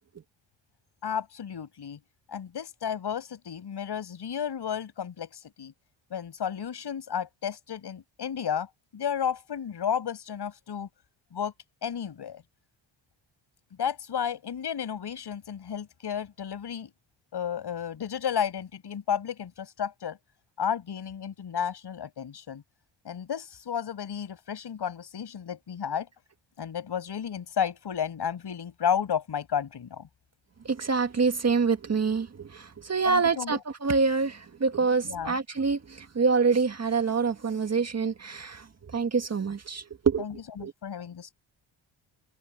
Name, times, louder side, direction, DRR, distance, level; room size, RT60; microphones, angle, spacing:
voice 1, 1.0-2.0 2.3-5.7 6.1-8.7 8.9-10.9 11.3-11.5 11.8-12.4 13.8-16.9 17.3-20.2 20.6-22.6 23.0-26.1 26.6-30.1 33.0-33.6 35.0-35.4 40.2-41.3, left 8 dB, 55° left, 7.1 m, -32 dB
voice 2, 30.7-38.7 38.9-40.3 40.6-40.7, right 5 dB, 30° right, 1.8 m, -26 dB
cardioid pair, 85°, 48 cm